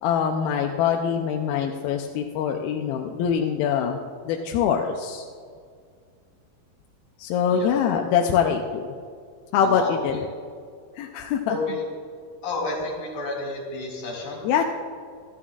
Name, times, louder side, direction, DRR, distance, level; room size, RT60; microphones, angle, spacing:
voice 1, 0.0-5.3 7.2-8.9 9.5-10.2 11.0-11.8 14.4-14.6, left 7 dB, 80° left, 3 dB, 2.4 m, -24 dB
voice 2, 9.6-10.2 11.5-11.8 12.4-14.4, left 2 dB, 60° left, -2 dB, 4.8 m, -30 dB
25.5 x 11.0 x 2.4 m, 2.1 s
omnidirectional pair, 4.6 m